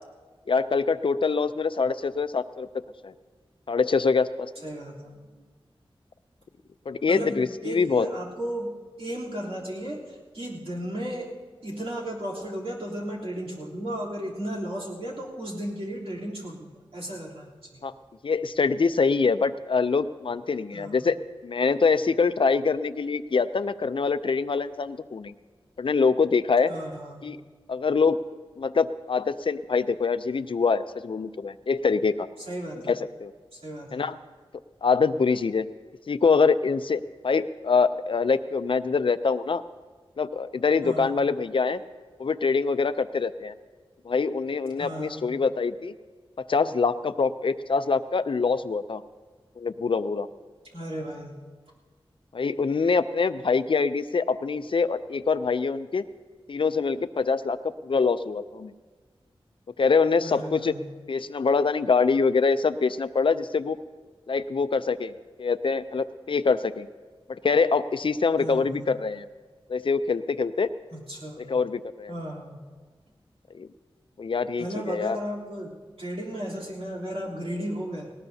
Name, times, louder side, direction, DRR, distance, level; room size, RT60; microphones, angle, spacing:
voice 1, 0.5-2.7 3.0-3.1 3.7-4.5 6.9-8.1 17.8-17.9 18.2-21.2 21.4-25.3 25.8-26.7 27.2-27.4 27.7-28.2 28.6-32.3 32.9-33.3 33.9-34.2 34.8-35.7 36.1-39.6 40.2-41.8 42.2-43.5 44.1-45.9 46.5-49.0 49.6-50.3 52.3-56.0 56.5-57.6 57.8-58.7 59.8-60.7 61.1-63.8 64.3-65.1 65.4-66.9 67.3-69.3 69.7-70.7 71.4-72.1 73.5-73.7 74.2-75.2, left 4 dB, 60° left, 13 dB, 0.5 m, -24 dB
voice 2, 4.6-5.5 7.1-11.3 11.6-17.9 20.7-21.0 26.7-27.3 32.5-32.9 33.5-34.0 40.8-41.2 44.8-45.3 50.7-51.4 60.2-60.8 68.4-68.9 70.9-71.5 72.1-72.7 74.6-78.1, equal, 80° right, -6 dB, 3.3 m, -35 dB
19.0 x 18.5 x 2.8 m, 1.4 s
wide cardioid pair, 85°, 10 cm